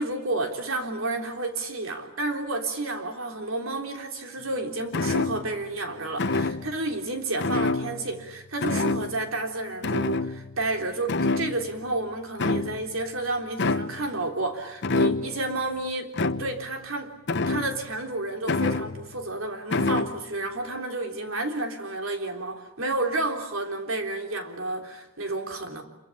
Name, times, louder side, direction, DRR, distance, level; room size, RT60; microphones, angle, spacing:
voice 1, 0.0-16.1 16.4-17.1 17.5-25.8, right 2 dB, 70° right, 3.7 m, -31 dB
sound 1, 4.9-5.6 6.2-6.8 7.4-8.3 8.6-9.3 9.8-10.7 11.1-11.9 12.4-13.0 13.6-14.1 14.8-15.5 16.1-16.7 17.3-18.0 18.5-19.2 19.7-20.2, left 3 dB, 60° left, 1.0 m, -27 dB
27.0 x 24.0 x 8.7 m
head